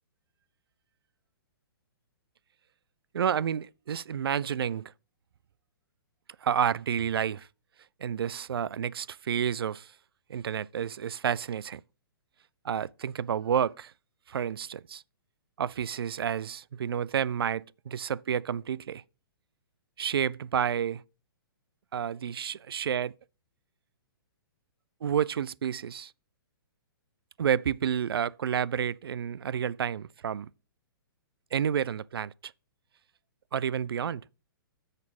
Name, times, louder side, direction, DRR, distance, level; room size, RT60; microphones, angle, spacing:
voice 1, 3.1-4.9 6.4-7.5 8.0-9.9 10.3-11.8 12.6-13.9 14.3-15.0 15.6-19.0 20.0-21.0 21.9-23.1 25.0-26.1 27.4-30.5 31.5-32.5 33.5-34.2, right 8 dB, 80° right, 0.4 m, -30 dB
6.6 x 5.9 x 7.1 m
hypercardioid pair, 140°, 12 cm